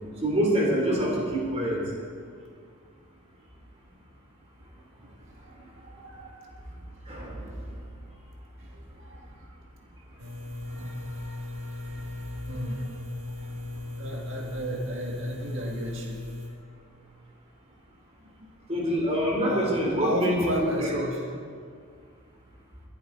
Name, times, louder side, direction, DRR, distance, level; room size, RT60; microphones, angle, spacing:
voice 1, 0.2-1.8 7.1-7.4 18.7-21.0, equal, 30° right, -2 dB, 3.1 m, -25 dB
voice 2, 5.8-6.7 8.6-9.3 10.7-13.0 13.4-13.5 14.0-16.2 19.5-21.2, right 1 dB, 55° right, -1 dB, 1.9 m, -35 dB
sound 1, 10.2-16.5, left 2 dB, 75° right, 2.3 m, -37 dB
23.0 x 9.8 x 3.9 m, 2.1 s
head